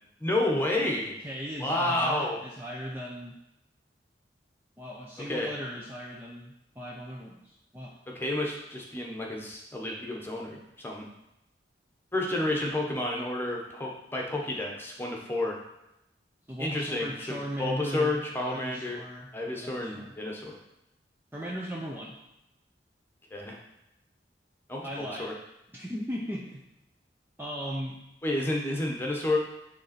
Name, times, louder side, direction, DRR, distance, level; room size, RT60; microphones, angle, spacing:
voice 1, 0.2-1.1 1.6-2.4 5.3-5.5 8.1-11.1 12.1-15.6 16.6-19.0 19.3-20.6 23.3-23.6 24.7-25.3 28.2-29.4, left 1 dB, 10° left, -1 dB, 1.1 m, -30 dB
voice 2, 1.2-3.4 4.8-8.0 16.5-19.3 19.6-20.1 21.3-22.2 24.8-25.3 25.7-26.6 27.4-28.0, equal, 10° right, -2 dB, 0.6 m, -38 dB
9.5 x 3.6 x 4.3 m, 0.87 s
head